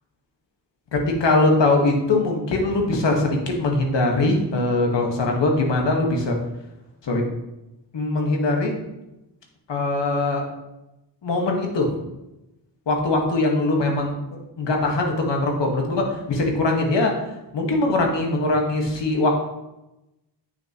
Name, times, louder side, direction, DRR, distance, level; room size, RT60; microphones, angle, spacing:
voice 1, 0.9-6.4 7.0-7.2 7.9-8.8 9.7-10.4 11.2-11.9 12.9-14.1 14.6-17.1 17.5-19.3, left 2 dB, 85° left, 1 dB, 1.5 m, -21 dB
8.2 x 6.4 x 2.9 m, 0.95 s
wide cardioid pair, 80°, 42 cm